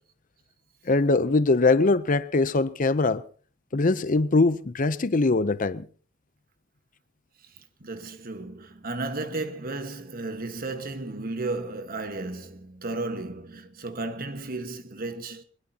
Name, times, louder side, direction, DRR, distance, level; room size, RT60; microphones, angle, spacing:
voice 1, 0.9-3.2 3.7-5.8, left 3 dB, 45° left, 0.7 m, -22 dB
voice 2, 7.8-15.4, right 2 dB, 50° right, 1.5 m, -34 dB
22.0 x 21.0 x 2.9 m
head